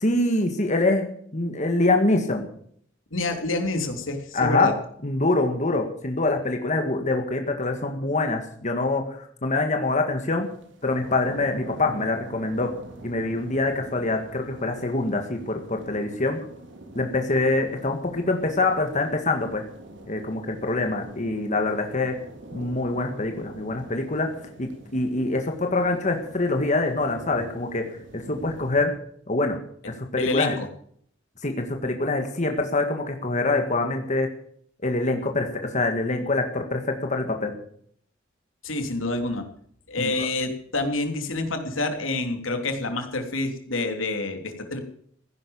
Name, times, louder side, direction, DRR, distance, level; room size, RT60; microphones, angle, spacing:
voice 1, 0.0-1.0 1.3-2.5 4.3-4.8 5.0-10.5 10.8-12.8 13.0-16.4 17.0-19.6 20.1-22.2 22.5-27.9 28.1-28.9 29.3-29.6 29.9-30.6 31.4-34.3 34.8-37.5 40.0-40.3, left 2 dB, 40° left, 4 dB, 1.8 m, -25 dB
voice 2, 3.1-4.7 30.2-30.7 38.6-39.4 39.9-44.8, left 2 dB, 85° left, 5 dB, 3.1 m, -27 dB
sound 1, 10.4-28.8, right 1 dB, 65° right, 3.3 m, -44 dB
15.5 x 11.0 x 7.1 m, 0.63 s
head